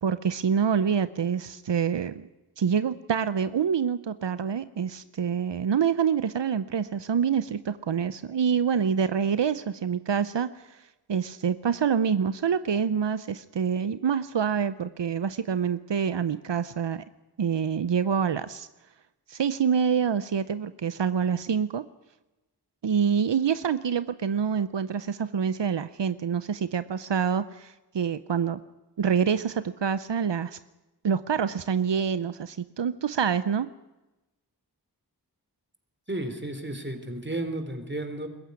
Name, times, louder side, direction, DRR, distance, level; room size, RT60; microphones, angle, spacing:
voice 1, 0.0-2.3 2.6-10.8 11.1-17.0 17.4-18.7 19.3-21.8 22.8-28.6 29.0-30.6 31.0-33.7, right 7 dB, 90° right, 13 dB, 0.7 m, -26 dB
voice 2, 36.1-38.3, right 1 dB, 25° right, 7 dB, 3.6 m, -33 dB
21.5 x 15.0 x 9.6 m, 1.0 s
wide cardioid pair, 45°, 41 cm